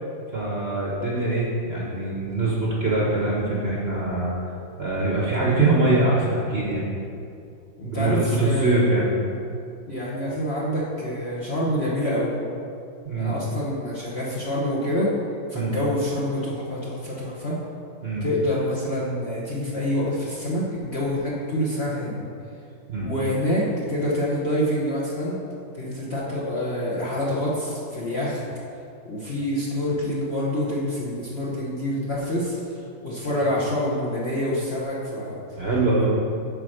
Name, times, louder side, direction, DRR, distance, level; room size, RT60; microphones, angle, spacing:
voice 1, 0.3-4.4 4.8-6.8 7.8-9.1 13.0-13.3 15.5-15.8 18.0-18.3 22.9-23.1 35.6-36.1, right 2 dB, 40° right, -5 dB, 1.0 m, -23 dB
voice 2, 7.8-8.8 9.9-12.3 13.1-15.1 15.5-17.5 18.2-22.2 23.0-25.4 25.7-28.4 29.0-35.4 36.0-36.1, left 1 dB, 40° left, -6 dB, 1.0 m, -26 dB
8.8 x 4.3 x 6.4 m, 2.5 s
omnidirectional pair, 2.1 m